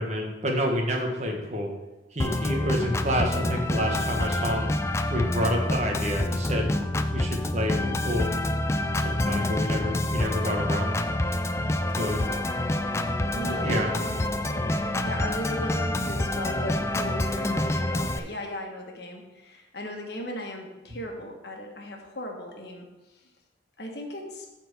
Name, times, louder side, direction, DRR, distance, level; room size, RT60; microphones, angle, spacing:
voice 1, 0.0-1.7 2.1-4.7 5.1-6.7 7.1-8.3 8.9-11.0 11.9-12.2 13.4-13.9, equal, 35° right, 1 dB, 1.4 m, -28 dB
Organ, 2.2-18.2, left 1 dB, 15° left, 0.3 m, -27 dB
voice 2, 12.8-23.3 23.8-24.5, left 1 dB, 60° left, 2 dB, 1.4 m, -37 dB
7.7 x 4.4 x 6.8 m, 1.1 s
head